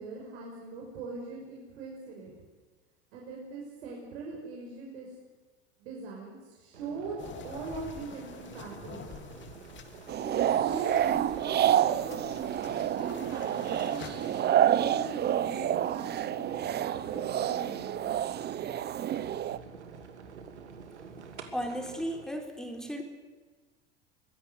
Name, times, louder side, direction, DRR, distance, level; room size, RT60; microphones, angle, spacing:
voice 1, 0.0-2.3 3.1-5.1 5.8-7.2 7.4-9.1 10.2-14.0 14.7-18.2, right 4 dB, 70° right, -2 dB, 6.0 m, -41 dB
sound 1, 6.7-22.2, right 5 dB, 85° right, 2.6 m, -48 dB
sound 2, 7.2-14.6, left 6 dB, 35° left, 3.3 m, -48 dB
sound 3, 10.1-19.6, right 11 dB, 30° right, 0.8 m, -28 dB
voice 2, 21.5-23.0, equal, ahead, 3 dB, 4.1 m, -35 dB
24.0 x 16.5 x 8.3 m, 1.4 s
hypercardioid pair, 90°, 33 cm